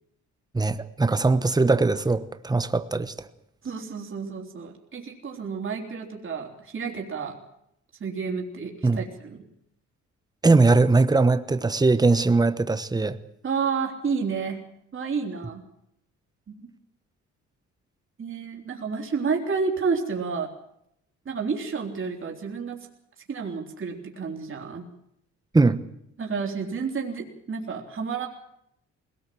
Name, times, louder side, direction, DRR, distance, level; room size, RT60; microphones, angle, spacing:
voice 1, 0.5-3.3 8.8-9.0 10.4-13.2 25.5-25.8, right 3 dB, 15° right, 12 dB, 1.1 m, -20 dB
voice 2, 3.6-7.4 8.0-9.5 13.4-14.6 14.9-15.6 16.5-16.7 18.2-20.5 21.3-22.8 23.3-24.9 26.2-28.3, right 5 dB, 40° right, 1 dB, 3.6 m, -30 dB
21.0 x 18.5 x 7.7 m, 0.78 s
cardioid pair, 90°, 30 cm